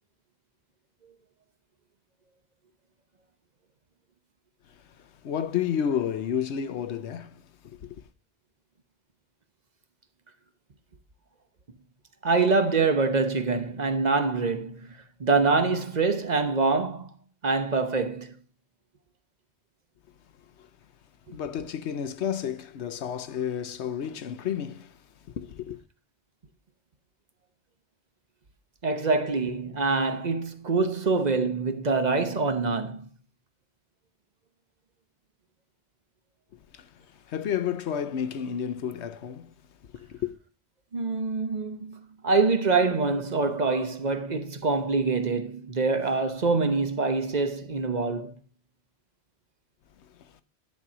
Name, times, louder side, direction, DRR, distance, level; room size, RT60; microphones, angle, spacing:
voice 1, 5.0-8.0 20.6-20.7 21.3-25.0 25.3-25.8 36.7-36.9 37.3-39.5 39.9-40.3, left 8 dB, 85° left, 1.1 m, -31 dB
voice 2, 12.2-14.9 15.2-17.1 17.4-18.4 21.3-21.4 28.8-33.1 40.9-48.3, right 4 dB, 45° right, 0.9 m, -25 dB
10.5 x 4.3 x 6.1 m
omnidirectional pair, 1.1 m